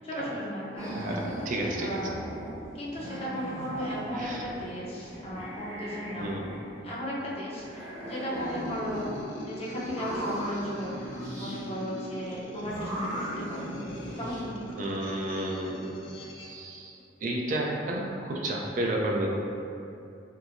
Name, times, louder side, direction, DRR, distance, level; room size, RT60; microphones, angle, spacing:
voice 1, 0.0-2.1 2.7-9.1 9.4-13.9 14.2-15.0, equal, 35° left, -6 dB, 0.5 m, -36 dB
sound 1, 0.8-2.6 2.9-4.7 5.0-7.0 7.6-9.3 9.8-11.6 12.6-14.4, equal, 15° right, 0.7 m, -38 dB
voice 2, 0.9-2.0 4.1-4.4 6.2-6.5 14.8-15.9 16.3-19.3, right 1 dB, 45° right, -1 dB, 0.3 m, -32 dB
sound 2, 8.4-16.6, equal, 85° left, 0.4 m, -42 dB
4.4 x 2.0 x 2.5 m, 2.6 s
head